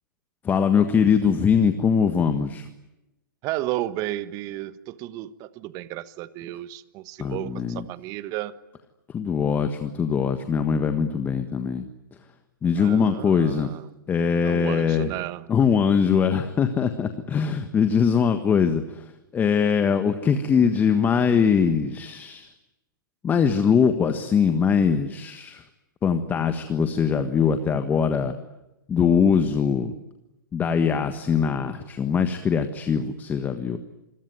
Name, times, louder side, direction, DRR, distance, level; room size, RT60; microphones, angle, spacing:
voice 1, 0.4-2.7 7.2-7.8 9.1-11.9 12.6-13.7 14.1-15.1 15.5-22.5 23.2-25.6 26.0-28.3 28.9-29.9 30.5-33.8, left 6 dB, 15° left, 8 dB, 1.5 m, -22 dB
voice 2, 3.4-8.5 12.8-13.9 14.4-15.5, right 15 dB, 30° right, 14 dB, 1.3 m, -33 dB
27.5 x 22.0 x 9.4 m, 0.96 s
hypercardioid pair, 120°, 11 cm